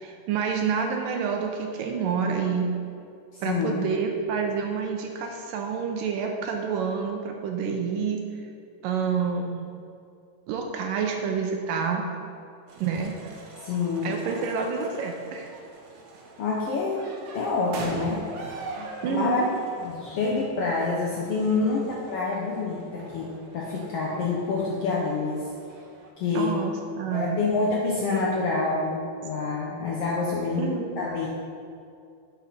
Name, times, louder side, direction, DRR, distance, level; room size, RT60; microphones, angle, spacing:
voice 1, 0.0-2.7 3.4-8.4 8.8-9.7 10.5-12.0 12.8-13.1 14.0-15.5 19.0-19.5 26.3-27.4 30.6-31.0, right 6 dB, 85° right, 2 dB, 2.3 m, -28 dB
voice 2, 3.3-3.8 13.6-14.4 16.4-17.0 17.3-18.2 18.8-19.4 19.8-25.5 26.2-26.5 27.1-30.7 31.0-31.3, left 4 dB, 85° left, -3 dB, 1.3 m, -27 dB
sound 1, 12.7-26.1, right 3 dB, 65° right, 1.9 m, -43 dB
11.0 x 6.3 x 4.2 m, 2.4 s
omnidirectional pair, 4.0 m